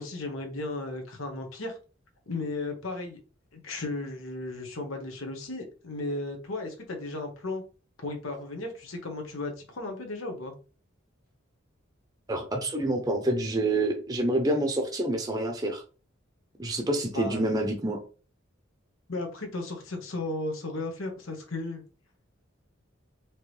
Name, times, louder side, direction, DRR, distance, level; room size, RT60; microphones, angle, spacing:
voice 1, 0.0-1.7 2.3-3.2 3.5-7.6 8.0-10.5 17.1-17.4 19.1-21.8, left 2 dB, 90° left, 3 dB, 1.1 m, -35 dB
voice 2, 12.3-15.8 16.6-18.0, right 1 dB, 20° right, 3 dB, 0.6 m, -27 dB
4.6 x 3.1 x 3.2 m, 0.35 s
head